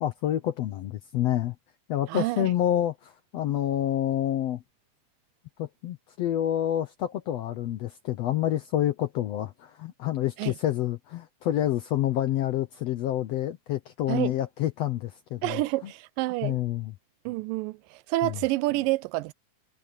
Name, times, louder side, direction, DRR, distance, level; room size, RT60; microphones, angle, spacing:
voice 1, 0.0-1.5 1.9-4.6 5.6-15.9 16.4-16.9 18.2-18.4, left 12 dB, 75° left, 1.5 m, -28 dB
voice 2, 2.1-2.5 10.4-10.5 14.1-14.3 15.4-16.6 17.3-19.3, right 19 dB, 90° right, 2.3 m, -28 dB
omnidirectional pair, 3.9 m